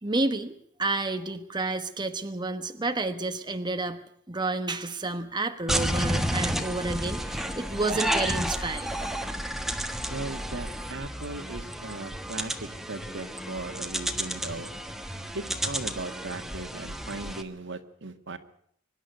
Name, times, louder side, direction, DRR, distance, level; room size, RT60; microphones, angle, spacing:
voice 1, 0.0-0.5 0.8-8.9, right 2 dB, 20° right, 7 dB, 1.2 m, -30 dB
sound 1, 5.7-17.4, equal, ahead, 1.4 m, -31 dB
voice 2, 10.1-14.7 15.3-18.4, right 2 dB, 60° right, 8 dB, 1.9 m, -38 dB
24.5 x 11.0 x 9.5 m, 0.66 s
head